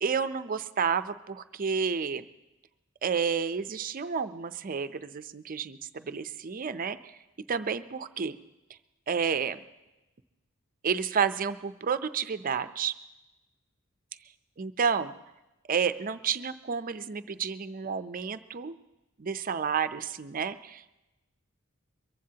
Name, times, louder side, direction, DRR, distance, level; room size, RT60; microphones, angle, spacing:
voice 1, 0.0-2.2 3.0-7.2 7.5-8.4 9.1-9.6 10.8-12.9 14.6-15.1 15.7-18.7 19.2-20.9, right 6 dB, 40° right, 12 dB, 0.5 m, -30 dB
23.0 x 15.0 x 2.8 m, 1.0 s
head